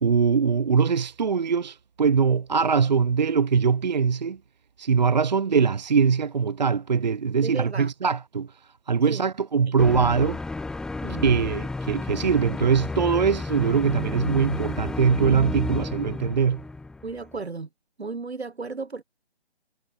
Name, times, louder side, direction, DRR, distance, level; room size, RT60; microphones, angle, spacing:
voice 1, 0.0-4.4 4.8-8.5 8.9-10.4 11.2-16.6, right 6 dB, 40° right, 0.6 m, -22 dB
voice 2, 7.4-7.9 9.1-9.2 9.7-9.8 11.0-11.3 17.0-17.7 18.0-19.0, right 4 dB, 70° right, 4.0 m, -34 dB
sound 1, 9.8-17.4, left 3 dB, ahead, 2.2 m, -32 dB
figure-of-eight pair, 155°, 33 cm